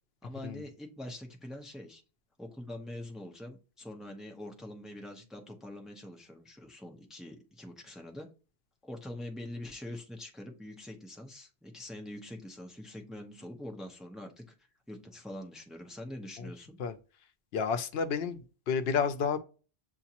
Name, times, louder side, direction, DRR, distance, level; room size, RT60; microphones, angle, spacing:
voice 1, 0.2-2.0 2.4-8.3 8.8-14.5 14.9-16.8, left 1 dB, ahead, 0.6 m, -44 dB
voice 2, 17.5-18.4 18.7-19.4, left 6 dB, 80° left, 0.8 m, -30 dB
7.0 x 2.5 x 2.8 m
omnidirectional pair, 1.0 m